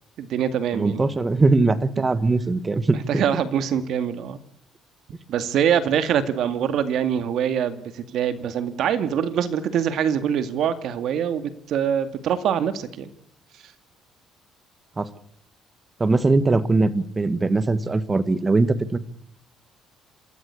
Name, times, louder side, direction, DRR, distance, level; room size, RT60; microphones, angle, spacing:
voice 1, 0.2-1.1 2.9-4.4 5.3-13.1, right 8 dB, 65° right, 12 dB, 2.2 m, -24 dB
voice 2, 0.7-3.2 15.0-15.1 16.0-19.0, right 3 dB, 20° right, 15 dB, 1.5 m, -21 dB
27.5 x 13.5 x 8.4 m, 0.68 s
cardioid pair, 125°, 0 cm